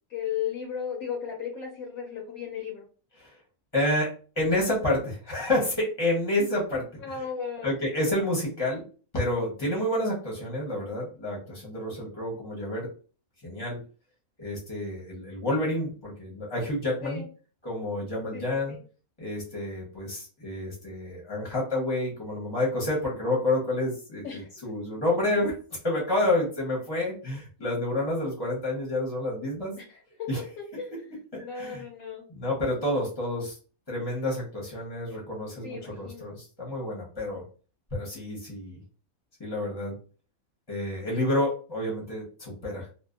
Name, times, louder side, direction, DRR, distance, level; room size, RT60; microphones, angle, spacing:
voice 1, 0.1-2.9 7.0-7.7 17.0-17.3 18.3-18.8 24.2-24.5 29.8-30.3 30.6-31.0 31.4-32.2 35.6-36.3, left 7 dB, 80° left, 0 dB, 1.0 m, -35 dB
voice 2, 3.7-6.9 7.1-7.2 7.6-8.8 9.1-12.9 13.4-13.8 14.4-17.2 17.6-18.8 19.2-25.6 25.8-29.7 30.3-30.4 31.3-31.8 32.3-33.6 33.9-37.4 37.9-38.8 39.4-39.9 40.7-42.9, left 1 dB, 25° left, -3 dB, 0.7 m, -29 dB
2.6 x 2.1 x 2.4 m, 0.38 s
omnidirectional pair, 1.5 m